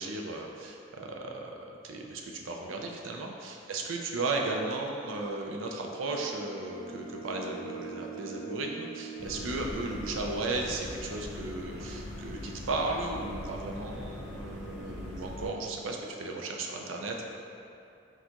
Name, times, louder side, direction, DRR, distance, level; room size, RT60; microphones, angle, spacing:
voice 1, 0.0-17.3, right 2 dB, 80° right, 1 dB, 0.5 m, -35 dB
sound 1, 4.1-10.7, right 4 dB, 50° left, 0.8 m, -44 dB
sound 2, 9.2-15.5, left 1 dB, 5° right, 1.4 m, -41 dB
4.2 x 3.9 x 2.9 m, 2.6 s
head